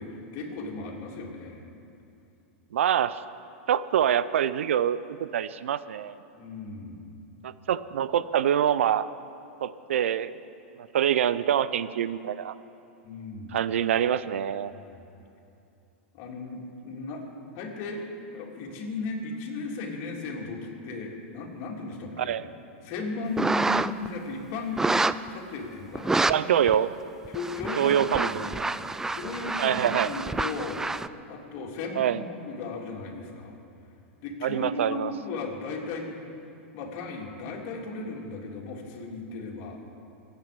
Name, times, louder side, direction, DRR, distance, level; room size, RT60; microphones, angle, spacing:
voice 1, 0.0-1.6 6.3-7.2 13.0-13.6 14.7-14.8 16.1-17.3 17.5-18.0 18.3-22.3 22.8-24.8 25.3-26.5 27.3-28.6 29.1-30.8 31.3-33.5 34.2-36.1 36.7-39.8, left 3 dB, 50° left, -2 dB, 3.3 m, -36 dB
voice 2, 2.7-3.2 3.7-6.2 7.4-9.1 9.6-10.3 10.8-12.6 13.5-14.7 22.2-22.5 26.3-26.9 27.8-28.5 29.6-30.1 32.0-32.2 34.4-35.1, right 9 dB, 80° right, 15 dB, 0.6 m, -25 dB
sound 1, 23.4-24.1 24.8-25.3 26.0-26.3 26.7-26.8 27.3-31.1, right 3 dB, 5° right, 0.3 m, -28 dB
27.0 x 9.1 x 5.3 m, 2.6 s
hypercardioid pair, 115°, 7 cm